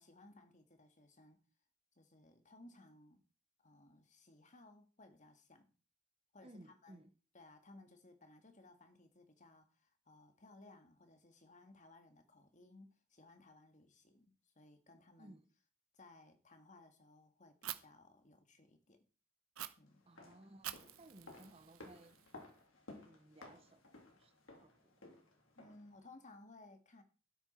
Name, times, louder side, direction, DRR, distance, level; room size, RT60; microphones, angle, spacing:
voice 1, 0.0-1.4 2.0-3.2 3.6-5.7 6.3-7.0 7.3-15.4 15.9-19.0 19.8-20.1 25.6-27.0, left 2 dB, 35° left, 1.9 m, -61 dB
voice 2, 6.4-7.1 15.2-15.5 20.1-22.2 23.0-24.3 24.6-25.0, right 1 dB, 30° right, 1.0 m, -60 dB
Fire, 17.6-17.8 19.6-19.7 20.6-22.6, right 12 dB, 85° right, 1.0 m, -47 dB
sound 1, 19.9-26.0 26.2-26.3, left 2 dB, 70° left, 3.6 m, -57 dB
12.5 x 10.0 x 4.5 m
head